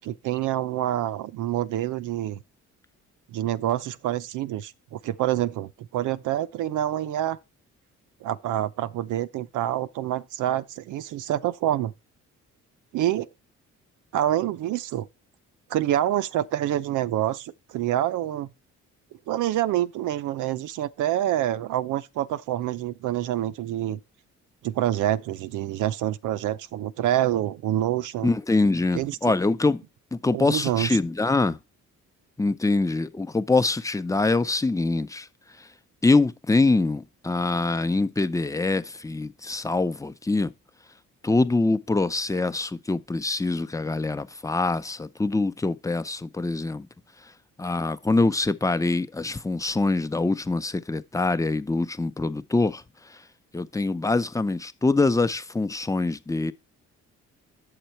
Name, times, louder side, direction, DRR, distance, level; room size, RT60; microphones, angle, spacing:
voice 1, 0.0-2.4 3.3-7.4 8.2-11.9 12.9-13.3 14.1-15.1 15.7-18.5 19.3-24.0 24.6-28.3 28.9-29.3 30.3-31.0, right 12 dB, 80° right, 0.7 m, -27 dB
voice 2, 28.2-29.8 30.1-31.6 32.4-35.3 36.0-40.5 41.2-46.9 47.6-52.8 53.5-56.5, left 3 dB, 10° left, 0.7 m, -24 dB
9.2 x 6.8 x 4.3 m
cardioid pair, 90°, 30 cm